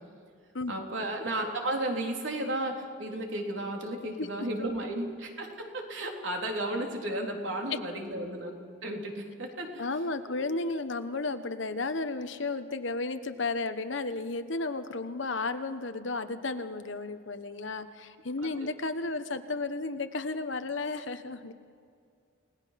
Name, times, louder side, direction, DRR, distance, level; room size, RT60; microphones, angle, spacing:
voice 1, 0.7-8.6 8.8-9.9 10.3-10.5 18.4-18.5, right 1 dB, 65° right, 1 dB, 3.6 m, -34 dB
voice 2, 9.8-21.5, left 3 dB, 65° left, 9 dB, 1.2 m, -33 dB
29.5 x 19.0 x 5.9 m, 2.3 s
head